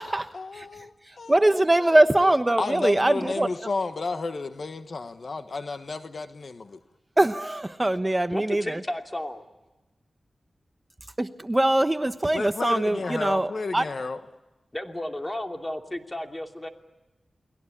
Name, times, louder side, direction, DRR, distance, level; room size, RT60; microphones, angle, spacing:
voice 1, 0.3-1.3 1.8-1.9 2.6-6.8 12.3-14.2, left 3 dB, 60° left, 9 dB, 1.3 m, -32 dB
voice 2, 1.1-3.5 7.2-8.8 11.2-13.8, right 1 dB, 20° right, 9 dB, 1.0 m, -22 dB
voice 3, 8.3-9.4 14.7-16.7, left 1 dB, 20° left, 4 dB, 2.9 m, -33 dB
30.0 x 20.5 x 8.6 m, 1.1 s
wide cardioid pair, 85°, 0 cm